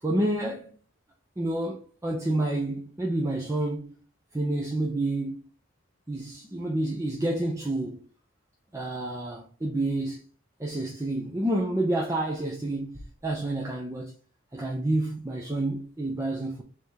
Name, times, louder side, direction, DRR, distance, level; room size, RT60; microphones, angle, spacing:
voice 1, 0.0-0.8 1.4-4.0 4.3-5.4 6.1-8.1 8.7-10.2 10.6-14.1 14.5-16.6, right 1 dB, 15° right, 0.6 m, -29 dB
3.5 x 3.5 x 4.1 m
head